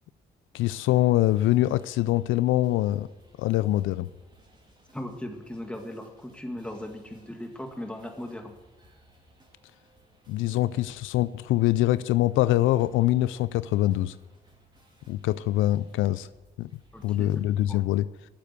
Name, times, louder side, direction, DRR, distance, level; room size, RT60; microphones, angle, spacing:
voice 1, 0.5-3.1 3.4-4.1 10.3-14.1 15.1-16.3 16.6-16.7 17.0-18.0, left 15 dB, 85° left, 16 dB, 0.4 m, -24 dB
sound 1, 0.6-17.8, right 1 dB, 20° right, 3.5 m, -60 dB
voice 2, 4.9-8.5 16.9-17.3 17.7-17.8, left 1 dB, 5° left, 4 dB, 1.9 m, -38 dB
11.5 x 7.5 x 8.1 m, 1.1 s
cardioid pair, 90°, 20 cm